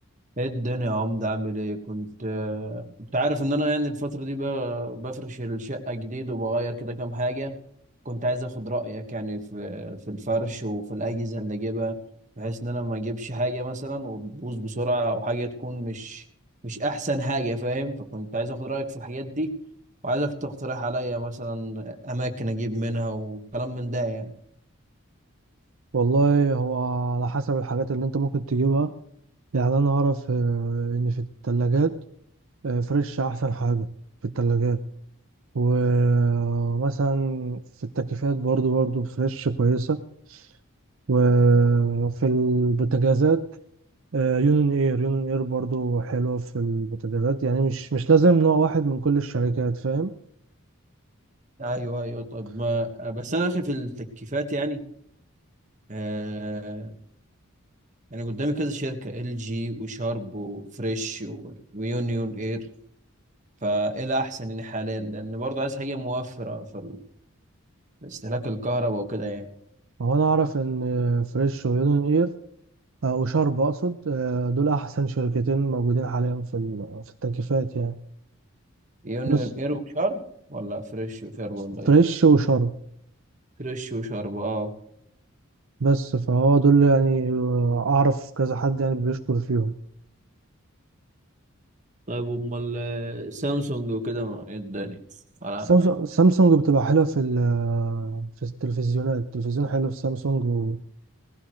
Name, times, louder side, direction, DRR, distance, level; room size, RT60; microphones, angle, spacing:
voice 1, 0.4-2.8 3.1-7.5 8.0-12.0 12.4-16.2 16.6-19.5 20.0-24.3 51.6-54.8 55.9-57.0 58.1-62.6 63.6-67.0 68.0-69.5 79.0-80.2 80.5-82.0 83.6-84.7 92.1-95.0 95.4-95.7, right 1 dB, 35° right, 5 dB, 1.6 m, -29 dB
voice 2, 25.9-28.9 29.5-32.0 32.6-33.9 34.2-34.8 35.5-40.0 40.3-40.5 41.1-43.5 44.1-50.1 70.0-72.3 73.0-78.0 79.3-79.5 81.9-82.8 85.8-89.8 95.6-100.8, right 4 dB, 65° right, 8 dB, 0.6 m, -22 dB
19.0 x 15.5 x 3.2 m, 0.69 s
head